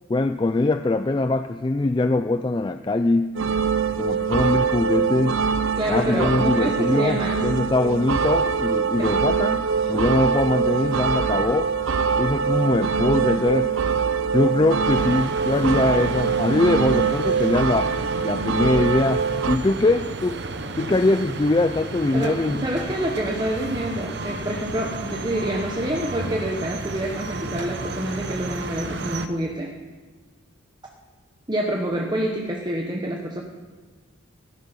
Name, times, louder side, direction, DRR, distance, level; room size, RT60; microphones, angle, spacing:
voice 1, 0.1-3.3 4.0-5.4 5.9-11.7 12.2-13.7 14.3-17.9 18.2-20.4 20.8-22.6, left 2 dB, 20° left, 9 dB, 0.3 m, -22 dB
sound 1, 3.3-19.6, right 6 dB, 70° right, 0.6 m, -23 dB
voice 2, 5.7-7.5 9.0-9.2 9.9-10.1 22.1-29.7 31.5-33.4, right 1 dB, 20° right, 1 dB, 1.1 m, -27 dB
sound 2, 14.8-29.3, right 3 dB, 55° right, 1.0 m, -33 dB
16.0 x 12.5 x 5.6 m, 1.4 s
head